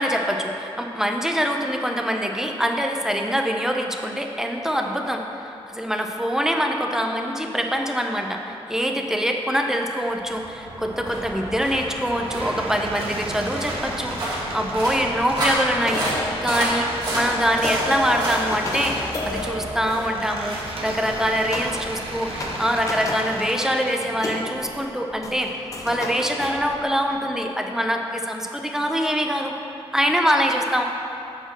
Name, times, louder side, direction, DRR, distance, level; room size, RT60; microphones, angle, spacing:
voice 1, 0.0-16.1 16.4-25.5 25.8-29.5 29.9-30.8, equal, 5° right, 2 dB, 0.5 m, -24 dB
sound 1, 10.1-23.5, right 1 dB, 45° right, 1.8 m, -31 dB
sound 2, 12.1-23.9, right 2 dB, 65° right, 0.8 m, -37 dB
sound 3, 15.7-20.4 21.5-22.0 22.2-23.4 23.7-27.3, left 1 dB, 35° left, 0.8 m, -32 dB
8.0 x 4.3 x 6.1 m, 2.7 s
wide cardioid pair, 170°, 10 cm